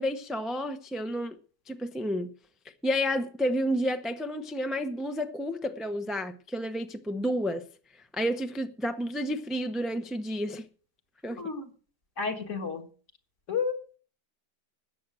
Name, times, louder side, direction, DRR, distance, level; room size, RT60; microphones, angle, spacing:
voice 1, 0.0-1.4 1.7-2.3 2.8-7.6 8.1-10.7 11.2-11.4, equal, ahead, 0.4 m, -30 dB
voice 2, 11.3-11.7 12.2-12.9 13.5-13.8, left 5 dB, 50° left, 2.0 m, -31 dB
13.5 x 8.9 x 6.3 m
omnidirectional pair, 1.7 m